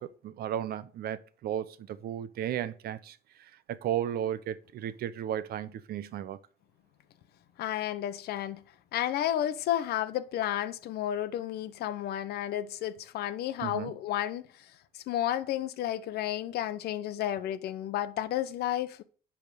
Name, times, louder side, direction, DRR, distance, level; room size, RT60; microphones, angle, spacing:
voice 1, 0.0-6.4 13.6-14.0, right 10 dB, 65° right, 0.8 m, -35 dB
voice 2, 7.6-8.6 8.9-19.0, left 12 dB, 70° left, 0.8 m, -32 dB
10.5 x 3.6 x 6.3 m
cardioid pair, 110°, 17 cm